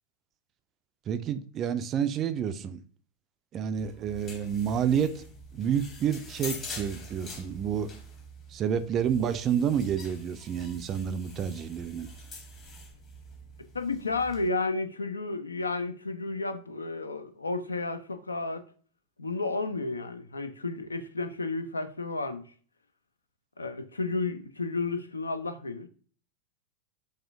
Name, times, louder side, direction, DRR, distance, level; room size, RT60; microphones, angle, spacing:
voice 1, 1.1-2.8 3.5-5.2 5.5-7.9 8.5-12.1, right 8 dB, 30° right, 0.3 m, -29 dB
sound 1, 3.8-14.5, left 1 dB, 30° left, 1.0 m, -45 dB
voice 2, 13.7-18.7 19.2-22.5 23.6-25.9, left 3 dB, 80° left, 0.4 m, -32 dB
4.3 x 2.4 x 3.5 m
figure-of-eight pair, 90°, 0 cm